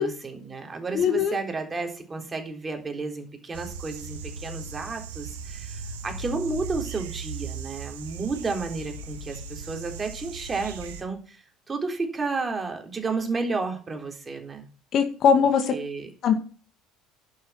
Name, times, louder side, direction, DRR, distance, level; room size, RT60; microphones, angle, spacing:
voice 1, 0.0-14.7 15.7-16.1, right 3 dB, 25° right, 3 dB, 3.8 m, -32 dB
voice 2, 0.9-1.4 14.9-15.7 16.2-16.3, left 7 dB, 50° left, 7 dB, 2.1 m, -21 dB
sound 1, 3.5-11.0, right 4 dB, 75° right, 1.9 m, -38 dB
11.5 x 7.6 x 5.9 m, 0.38 s
hypercardioid pair, 65°, 0 cm